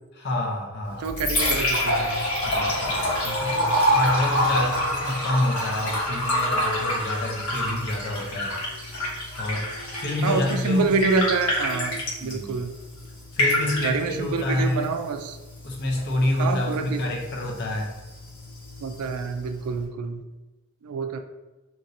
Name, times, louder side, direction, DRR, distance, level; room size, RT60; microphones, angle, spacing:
voice 1, 0.1-1.1 2.5-8.6 9.4-9.7 10.0-10.9 12.2-12.6 13.3-14.9 15.6-17.9, left 1 dB, 50° left, 0 dB, 0.6 m, -28 dB
Liquid, 0.8-19.8, left 1 dB, 70° left, 1.1 m, -28 dB
voice 2, 1.0-2.2 3.2-3.7 10.2-12.7 13.8-15.4 16.4-17.0 18.8-20.2 20.8-21.2, right 4 dB, 80° right, 7 dB, 0.3 m, -27 dB
2.9 x 2.8 x 2.6 m, 1.1 s
head